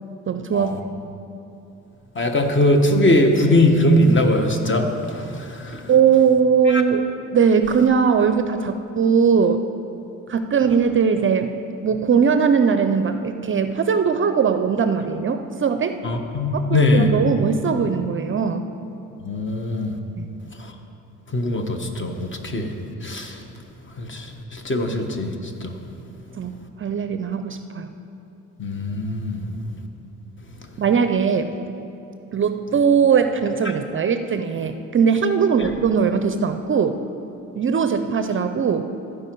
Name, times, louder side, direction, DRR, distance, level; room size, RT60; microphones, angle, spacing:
voice 1, 0.3-0.7 5.9-7.1 7.3-9.6 10.3-11.5 11.8-16.0 16.7-18.7 20.2-20.3 26.4-27.9 30.8-31.5 32.3-37.0 37.6-38.9, right 6 dB, 35° right, 8 dB, 0.5 m, -20 dB
voice 2, 2.1-4.9 5.1-5.8 6.7-6.8 16.0-17.1 19.2-19.9 21.3-22.7 23.0-23.4 24.0-24.3 24.5-25.3 25.6-25.7 28.6-29.4, left 1 dB, 35° left, 5 dB, 1.2 m, -20 dB
15.0 x 5.1 x 4.6 m, 3.0 s
supercardioid pair, 70°, 35 cm